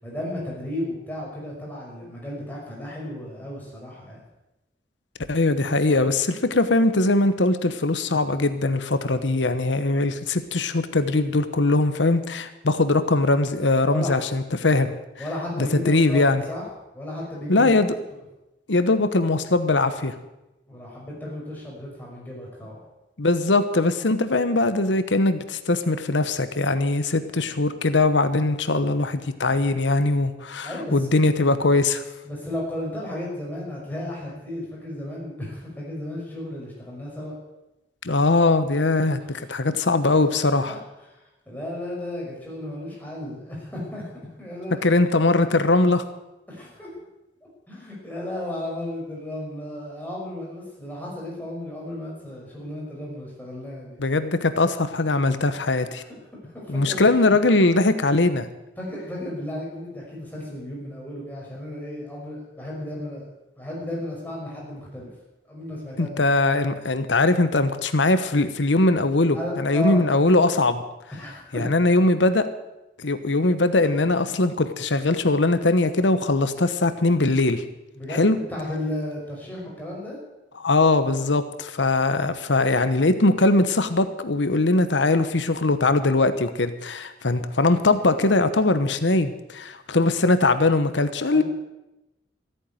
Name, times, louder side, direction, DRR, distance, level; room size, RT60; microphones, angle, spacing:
voice 1, 0.0-4.2 13.9-14.2 15.2-16.7 16.9-17.7 20.7-22.8 30.6-31.1 32.2-37.3 39.2-39.4 40.0-40.1 40.4-40.8 41.1-44.9 46.5-46.9 47.7-54.0 55.7-55.8 56.5-57.4 58.8-63.2 63.6-65.1 65.5-66.3 69.3-70.1 71.1-71.8 77.9-80.2 91.3-91.4, left 1 dB, 10° left, -4 dB, 5.6 m, -34 dB
voice 2, 5.3-14.9 15.6-16.4 17.5-17.9 18.7-20.1 23.2-32.0 38.0-40.7 44.8-46.0 54.0-56.0 56.7-58.5 66.0-70.8 71.5-72.5 73.0-77.6 78.1-78.4 80.6-91.4, left 2 dB, 90° left, 11 dB, 1.1 m, -21 dB
14.0 x 9.3 x 9.1 m, 0.97 s
head